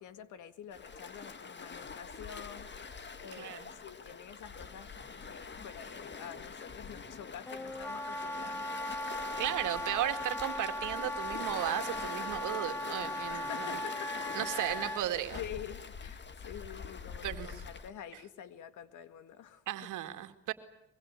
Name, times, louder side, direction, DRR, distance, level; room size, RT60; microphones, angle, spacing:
voice 1, 0.0-8.6 13.3-14.1 14.5-14.8 15.3-19.6, left 9 dB, 80° left, 11 dB, 2.0 m, -47 dB
Waves surf, 0.7-17.9, left 5 dB, 35° left, 2.1 m, -44 dB
voice 2, 3.3-3.7 9.4-13.7 14.3-15.4 17.2-17.6 19.7-20.5, right 13 dB, 85° right, 8 dB, 2.2 m, -35 dB
Wind instrument woodwind instrument, 7.5-15.0, left 1 dB, 10° left, 0.9 m, -38 dB
23.5 x 23.0 x 8.3 m, 0.88 s
cardioid pair, 90°, 30 cm